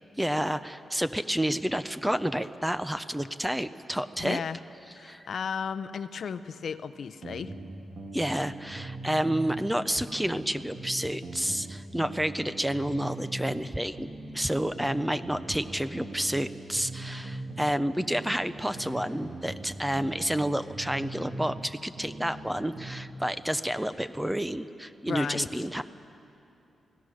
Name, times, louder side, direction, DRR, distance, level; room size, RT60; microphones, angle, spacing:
voice 1, 0.2-4.4 5.0-5.2 8.1-25.8, equal, 5° right, 12 dB, 0.5 m, -30 dB
voice 2, 4.2-4.6 4.9-7.5 25.1-25.5, left 6 dB, 55° left, 13 dB, 0.6 m, -34 dB
sound 1, 7.2-9.7 10.0-13.7 14.0-17.7 18.0-21.7 22.0-23.0, right 2 dB, 50° right, 2.4 m, -41 dB
28.5 x 17.0 x 6.4 m, 2.7 s
wide cardioid pair, 175°, 0 cm